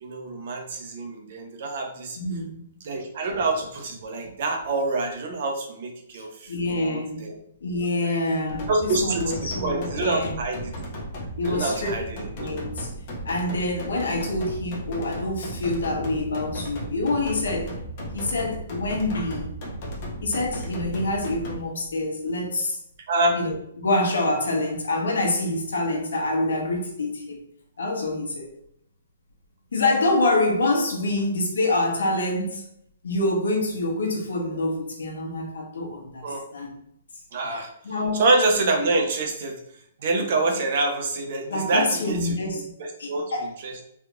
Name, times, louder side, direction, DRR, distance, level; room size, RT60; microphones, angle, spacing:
voice 1, 0.0-2.2 2.8-7.3 8.0-8.1 8.7-10.7 11.4-12.6 23.1-23.4 36.2-36.4 37.3-37.7 38.1-39.6 40.0-42.4 42.8-43.8, right 2 dB, 55° right, 0.7 m, -26 dB
voice 2, 2.2-2.6 6.5-7.2 7.6-10.4 11.4-11.9 12.2-12.9 13.2-17.8 18.1-19.5 20.2-22.8 23.3-27.4 27.8-28.5 29.7-32.6 33.0-36.2 36.5-36.7 37.5-37.6 37.8-38.2 41.5-42.7 43.0-43.5, left 2 dB, 85° left, 1.0 m, -26 dB
sound 1, 8.5-21.6, equal, 40° left, 0.9 m, -35 dB
3.2 x 2.9 x 2.5 m
hypercardioid pair, 155°, 0 cm